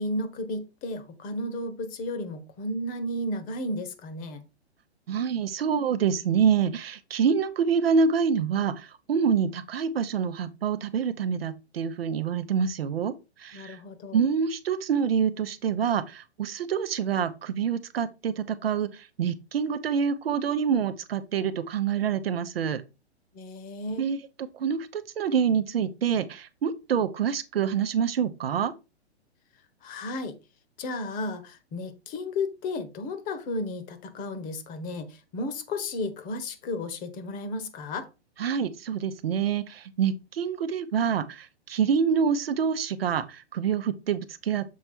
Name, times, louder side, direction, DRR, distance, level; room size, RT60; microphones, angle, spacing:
voice 1, 0.0-4.4 13.5-14.2 23.3-24.1 29.8-30.4 30.8-38.1, left 2 dB, 25° left, 1.2 m, -33 dB
voice 2, 5.1-13.1 13.4-13.8 14.1-22.8 24.0-24.2 24.5-28.7 38.4-44.6, right 7 dB, 60° right, 0.8 m, -26 dB
7.4 x 4.3 x 4.3 m
figure-of-eight pair, 115°, 33 cm